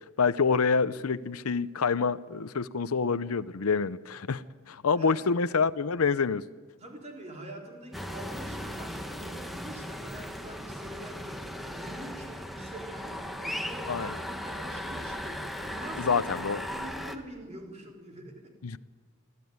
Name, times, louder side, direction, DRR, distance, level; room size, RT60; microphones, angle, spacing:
voice 1, 0.2-6.4 13.9-14.2 16.0-16.6 18.6-18.8, left 5 dB, 80° left, 15 dB, 0.7 m, -27 dB
voice 2, 6.8-13.1 13.4-16.2 16.7-18.5, right 1 dB, 30° right, 1 dB, 3.9 m, -45 dB
sound 1, 7.9-17.2, equal, ahead, 1.3 m, -37 dB
25.0 x 15.5 x 9.4 m, 1.5 s
head